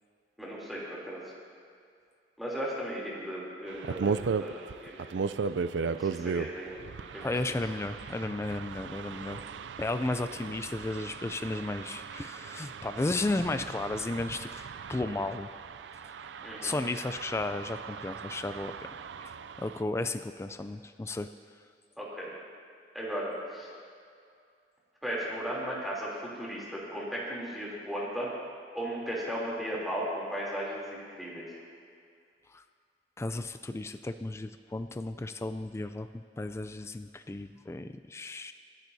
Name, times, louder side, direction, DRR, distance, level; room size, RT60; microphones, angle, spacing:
voice 1, 0.4-1.2 2.4-5.1 5.9-6.8 7.1-7.3 9.1-9.3 16.4-16.8 22.0-22.3 22.9-23.7 25.0-28.3 28.7-31.6, equal, ahead, -6 dB, 3.1 m, -36 dB
sound 1, 3.7-19.8, right 5 dB, 80° right, 0.4 m, -37 dB
voice 2, 7.2-9.4 9.8-15.5 16.6-18.7 19.2-19.3 19.6-21.3 32.5-32.6 33.2-38.5, left 2 dB, 15° left, 9 dB, 0.3 m, -34 dB
25.0 x 10.5 x 2.7 m, 2.3 s
head